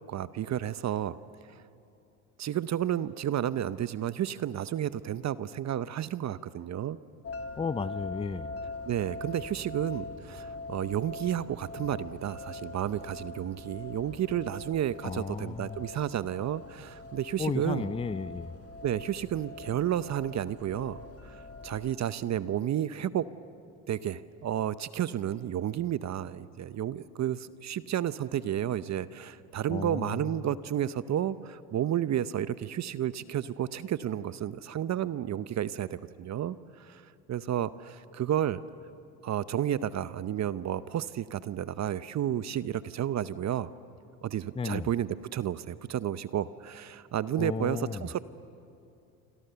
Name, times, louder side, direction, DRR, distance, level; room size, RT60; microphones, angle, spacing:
voice 1, 0.1-1.2 1.5-1.6 2.4-7.0 8.9-17.9 18.8-23.2 23.9-38.6 39.2-43.7 44.2-48.2, right 11 dB, 40° right, 16 dB, 0.8 m, -31 dB
sound 1, 7.2-21.9, left 2 dB, 35° left, 2.4 m, -43 dB
voice 2, 7.6-8.5 15.0-15.8 17.4-18.5 29.7-30.4 44.5-44.9 47.4-48.0, left 5 dB, 15° left, 16 dB, 0.7 m, -33 dB
27.5 x 25.5 x 6.9 m, 2.7 s
hypercardioid pair, 75°, 42 cm